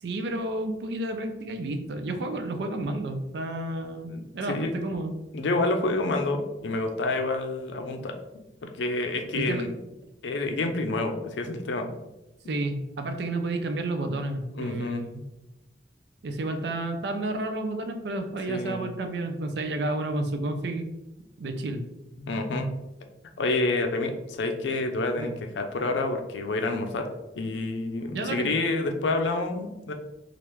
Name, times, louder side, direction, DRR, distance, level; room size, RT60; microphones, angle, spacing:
voice 1, 0.0-5.1 9.3-9.7 12.5-15.2 16.2-20.9 21.4-21.8 25.2-25.3 28.1-28.5, right 2 dB, 65° right, 6 dB, 0.4 m, -31 dB
voice 2, 4.1-4.7 5.3-9.7 10.2-11.9 14.5-15.0 18.5-18.8 22.2-22.8 23.4-27.1 27.4-29.9, left 2 dB, 80° left, 5 dB, 0.4 m, -28 dB
3.3 x 2.4 x 3.0 m, 0.97 s
head